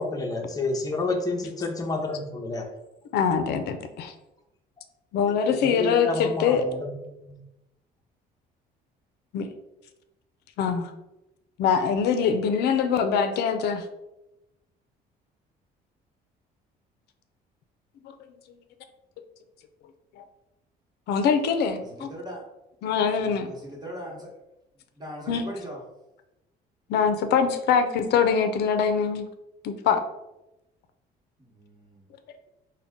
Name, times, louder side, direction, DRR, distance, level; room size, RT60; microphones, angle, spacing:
voice 1, 0.0-2.7 5.3-7.4, left 3 dB, 20° left, 2 dB, 0.6 m, -30 dB
voice 2, 3.1-4.1 5.1-6.6 9.3-9.5 10.6-10.9 11.6-13.8 20.2-20.3 21.1-22.1 22.8-23.5 25.3-25.4 26.9-29.3 29.6-30.0, left 6 dB, 75° left, 8 dB, 0.5 m, -23 dB
voice 3, 21.8-22.4 23.5-24.3 24.8-25.8 31.4-32.1, equal, 25° right, -2 dB, 1.2 m, -40 dB
3.9 x 2.2 x 3.5 m, 0.93 s
cardioid pair, 110°, 17 cm